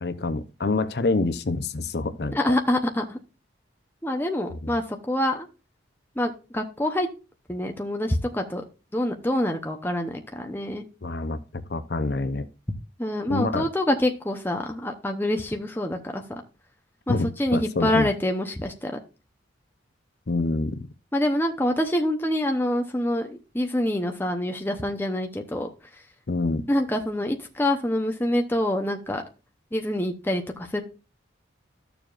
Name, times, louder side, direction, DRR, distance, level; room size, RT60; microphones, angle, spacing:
voice 1, 0.0-2.4 4.6-4.7 11.0-12.5 13.3-13.7 17.1-18.1 20.3-20.9 26.3-26.7, left 2 dB, 55° left, 0.7 m, -27 dB
voice 2, 2.3-3.2 4.0-5.5 6.2-7.1 7.5-8.6 8.9-10.8 13.0-16.4 17.1-19.0 21.1-25.7 26.7-29.2 29.7-30.8, left 1 dB, 10° left, 0.8 m, -26 dB
12.5 x 6.9 x 2.5 m
head